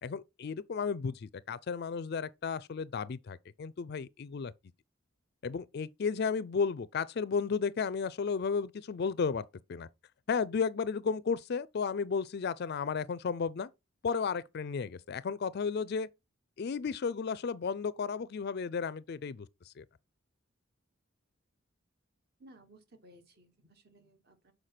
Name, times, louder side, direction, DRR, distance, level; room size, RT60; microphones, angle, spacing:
voice 1, 0.0-4.5 5.4-9.9 10.3-13.7 14.0-16.1 16.6-19.8, left 5 dB, 50° left, 0.4 m, -33 dB
voice 2, 22.4-24.5, right 1 dB, 50° right, 1.4 m, -59 dB
6.5 x 4.9 x 5.8 m
head